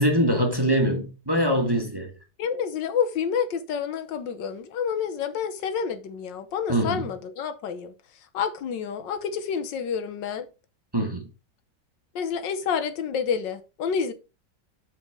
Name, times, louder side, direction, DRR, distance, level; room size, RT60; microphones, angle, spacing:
voice 1, 0.0-2.1 6.7-7.0 10.9-11.3, equal, 15° right, 1.4 m, -23 dB
voice 2, 2.4-7.9 8.3-10.5 12.1-14.1, left 7 dB, 85° left, 1.6 m, -29 dB
8.0 x 4.4 x 4.8 m
omnidirectional pair, 1.9 m